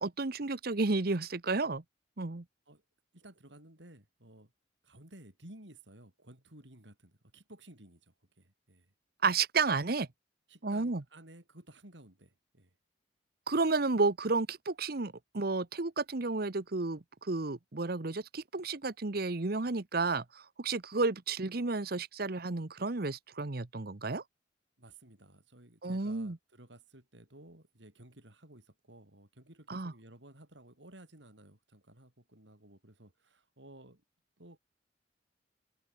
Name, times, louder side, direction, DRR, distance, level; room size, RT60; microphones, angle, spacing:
voice 1, 0.0-1.8 2.2-2.4 9.2-10.1 10.6-11.0 13.5-24.2 25.8-26.4 29.7-29.9, right 3 dB, 55° right, 1.0 m, -32 dB
voice 2, 3.1-4.5 4.8-8.9 10.5-12.7 24.8-34.0 34.4-34.6, right 1 dB, 75° right, 5.5 m, -55 dB
open air
head